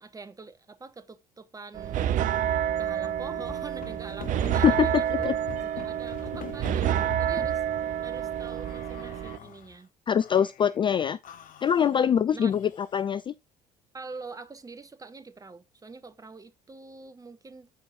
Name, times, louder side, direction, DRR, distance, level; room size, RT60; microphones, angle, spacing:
voice 1, 0.0-2.2 2.8-5.4 5.7-7.6 8.0-9.9 11.8-12.5 13.9-17.7, right 4 dB, 15° right, 0.9 m, -45 dB
sound 1, 1.7-9.4, right 10 dB, 40° right, 0.5 m, -28 dB
sound 2, 3.2-7.6 8.4-9.7 10.2-10.8 11.2-13.1, left 9 dB, 40° left, 0.8 m, -44 dB
voice 2, 4.6-5.3 10.1-11.2 11.6-13.3, left 8 dB, 25° left, 0.3 m, -24 dB
13.5 x 4.6 x 2.6 m
figure-of-eight pair, 55°, 21 cm